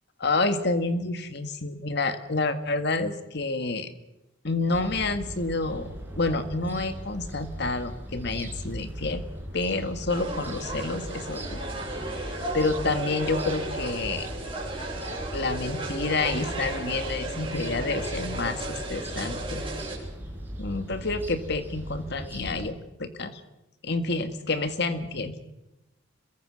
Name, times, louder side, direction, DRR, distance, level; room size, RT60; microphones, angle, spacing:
voice 1, 0.2-3.9 4.4-5.9 6.2-9.2 9.5-11.6 12.1-14.3 15.3-19.6 20.6-23.4 23.8-25.3, left 3 dB, 55° left, 9 dB, 1.9 m, -29 dB
sound 1, 4.7-22.7, equal, 10° right, 4.7 m, -39 dB
sound 2, 10.1-20.0, right 2 dB, 25° right, 7.5 m, -35 dB
27.0 x 22.5 x 6.4 m, 0.95 s
head